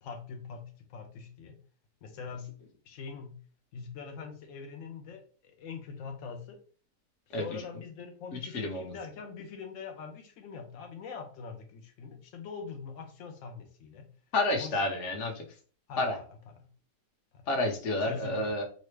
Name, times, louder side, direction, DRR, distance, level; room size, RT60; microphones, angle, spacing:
voice 1, 0.0-1.6 2.0-3.4 3.7-6.6 7.3-14.1 14.6-14.8 15.9-16.7 17.3-17.5 18.1-18.6, left 5 dB, 80° left, 4 dB, 0.7 m, -43 dB
voice 2, 8.3-8.9 14.3-15.5 16.0-16.2 17.5-18.6, left 2 dB, 55° left, 2 dB, 0.9 m, -30 dB
3.9 x 2.1 x 3.2 m, 0.42 s
omnidirectional pair, 1.9 m